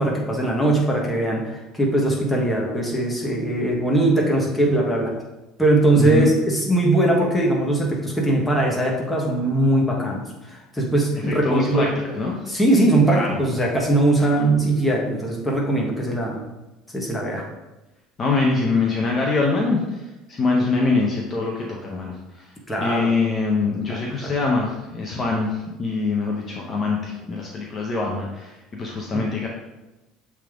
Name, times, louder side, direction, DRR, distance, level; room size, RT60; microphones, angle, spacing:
voice 1, 0.0-5.1 5.6-11.9 12.5-16.4 16.9-17.4 22.7-23.1 23.9-24.3 29.1-29.2, right 1 dB, 10° left, -2 dB, 1.4 m, -20 dB
voice 2, 6.0-6.3 11.2-12.4 13.1-13.4 14.2-14.3 18.2-20.0 20.3-22.5 22.8-29.5, left 3 dB, 35° left, -1 dB, 0.9 m, -24 dB
7.2 x 3.6 x 3.7 m, 1.0 s
cardioid pair, 120°, 0 cm